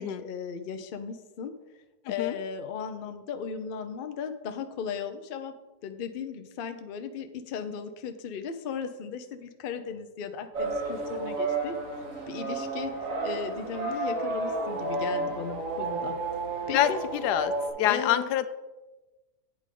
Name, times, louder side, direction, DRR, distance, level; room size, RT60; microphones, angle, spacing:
voice 1, 0.0-1.5 2.1-5.5 5.8-11.8 12.3-12.9 13.2-16.2 16.7-17.0 17.8-18.3, left 6 dB, 55° left, 8 dB, 0.6 m, -36 dB
sound 1, 10.5-17.7, right 3 dB, 55° right, 1.9 m, -31 dB
voice 2, 16.7-17.5 17.8-18.5, left 12 dB, 90° left, 12 dB, 1.2 m, -26 dB
8.9 x 8.5 x 3.8 m, 1.1 s
omnidirectional pair, 1.7 m